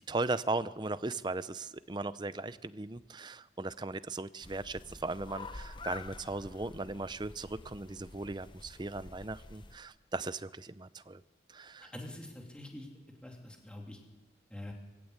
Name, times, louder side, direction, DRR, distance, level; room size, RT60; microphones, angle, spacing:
voice 1, 0.1-11.2 11.5-11.9, right 2 dB, 25° right, 14 dB, 0.6 m, -37 dB
sound 1, 4.4-9.8, left 3 dB, 25° left, 0.8 m, -48 dB
voice 2, 11.9-12.9 13.2-14.0 14.5-14.7, left 1 dB, 5° left, 0 dB, 3.0 m, -45 dB
22.5 x 16.5 x 8.2 m, 1.1 s
head